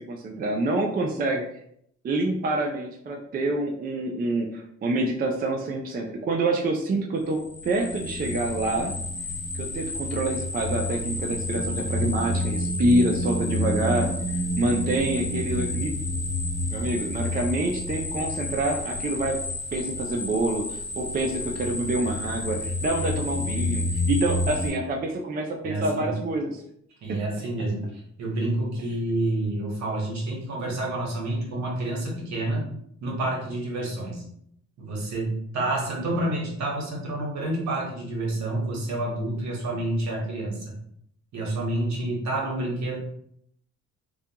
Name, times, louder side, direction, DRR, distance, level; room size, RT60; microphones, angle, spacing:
voice 1, 0.0-1.4 2.0-9.0 9.5-14.1 14.6-15.9 16.7-19.4 19.7-26.6, right 2 dB, 30° right, 1 dB, 0.4 m, -27 dB
sound 1, 7.3-24.7, left 1 dB, 20° left, 0.9 m, -29 dB
voice 2, 25.6-26.2 27.0-32.6 33.0-34.2 34.8-40.7 41.3-43.0, right 1 dB, 65° right, -2 dB, 1.0 m, -29 dB
2.3 x 2.2 x 2.7 m, 0.70 s
cardioid pair, 90°, 30 cm